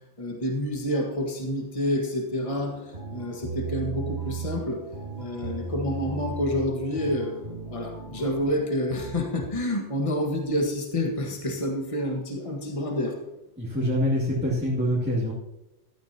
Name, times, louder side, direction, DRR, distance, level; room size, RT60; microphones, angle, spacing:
voice 1, 0.2-4.8 5.2-13.2, left 1 dB, 25° left, 2 dB, 1.6 m, -28 dB
sound 1, 2.6-9.5, right 4 dB, 55° right, 2.7 m, -36 dB
voice 2, 13.6-15.3, equal, 10° right, -8 dB, 2.5 m, -25 dB
16.0 x 13.0 x 2.9 m, 0.92 s
omnidirectional pair, 1.3 m